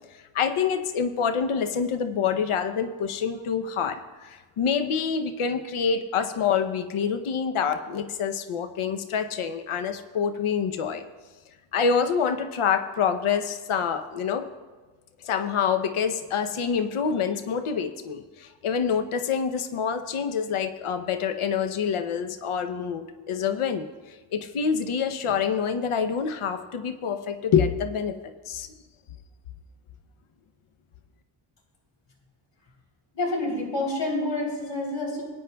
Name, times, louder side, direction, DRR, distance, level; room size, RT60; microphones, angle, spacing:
voice 1, 0.3-11.0 11.7-14.5 15.2-23.9 24.3-28.7, left 6 dB, 80° left, 8 dB, 0.8 m, -26 dB
voice 2, 33.1-35.2, left 2 dB, 60° left, -2 dB, 3.3 m, -28 dB
20.0 x 9.3 x 2.3 m, 1.3 s
cardioid pair, 85°, 49 cm